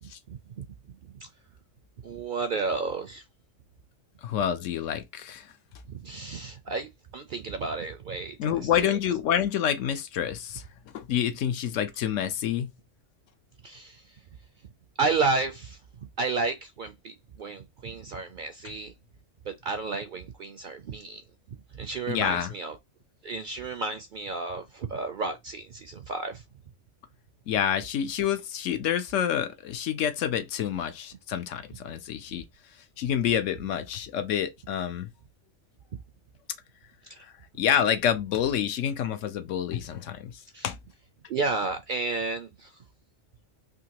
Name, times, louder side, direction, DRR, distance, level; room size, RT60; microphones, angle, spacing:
voice 1, 0.0-0.7 1.1-1.3 2.0-3.2 5.9-9.0 13.6-14.0 15.0-15.8 16.2-18.9 19.5-21.2 21.7-22.8 23.2-26.4 37.1-37.2 40.5-40.7 41.3-42.8, right 4 dB, 60° right, 0.5 m, -32 dB
voice 2, 4.2-5.5 8.4-10.7 10.9-12.7 22.1-22.5 27.5-32.4 33.0-35.1 37.2-40.8, left 9 dB, 75° left, 1.0 m, -28 dB
3.6 x 2.8 x 2.9 m
omnidirectional pair, 1.3 m